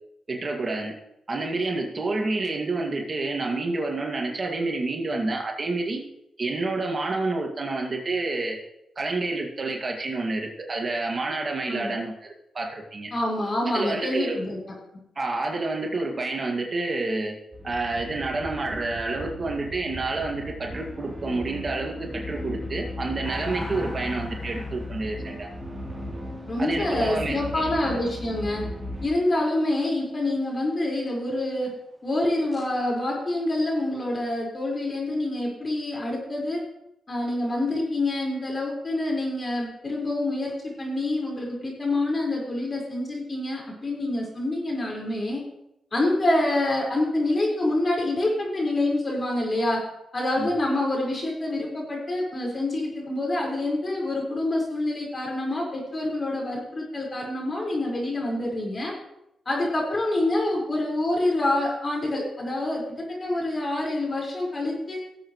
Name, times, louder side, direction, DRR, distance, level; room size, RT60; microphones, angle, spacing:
voice 1, 0.3-0.9 1.3-6.0 6.4-8.6 9.0-13.1 13.7-14.4 15.2-17.4 17.6-25.5 26.6-27.9 50.4-50.5, right 3 dB, 40° right, 1 dB, 2.1 m, -29 dB
voice 2, 11.7-12.0 13.1-14.7 26.5-28.6 29.0-31.8 32.0-36.6 37.1-45.4 45.9-49.8 50.1-58.9 59.4-65.0, left 1 dB, 40° left, -1 dB, 4.9 m, -26 dB
sound 1, 17.5-29.1, left 1 dB, 15° right, 2.9 m, -36 dB
sound 2, 23.2-29.1 32.5-32.7, equal, 10° left, 3.0 m, -42 dB
18.0 x 7.9 x 3.2 m, 0.83 s
cardioid pair, 70°, 0 cm